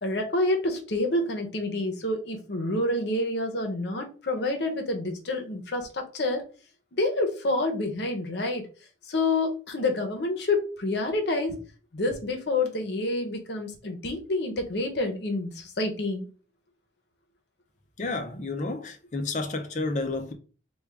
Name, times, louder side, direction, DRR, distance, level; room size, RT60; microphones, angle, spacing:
voice 1, 0.0-6.4 6.9-8.7 9.1-11.6 11.9-16.3, left 2 dB, 70° left, 0.8 m, -28 dB
voice 2, 18.0-20.3, left 3 dB, 40° left, 0.5 m, -31 dB
3.5 x 2.3 x 3.4 m
head